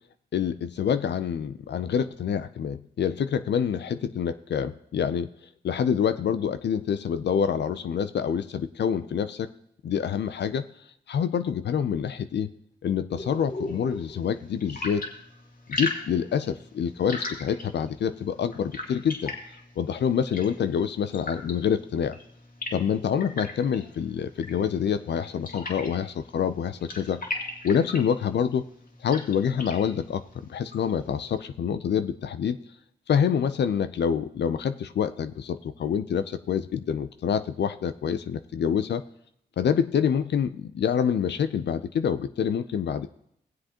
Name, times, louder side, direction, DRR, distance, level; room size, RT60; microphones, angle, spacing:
voice 1, 0.3-5.3 5.6-9.5 9.8-10.6 11.1-12.5 12.8-15.1 15.7-19.3 19.8-22.2 22.7-27.2 27.6-28.6 29.0-32.6 33.1-39.0 39.6-43.1, left 7 dB, 70° left, 10 dB, 0.5 m, -26 dB
sound 1, 13.2-31.4, left 2 dB, 50° left, 2.0 m, -39 dB
17.0 x 7.6 x 2.9 m, 0.73 s
supercardioid pair, 45°, 18 cm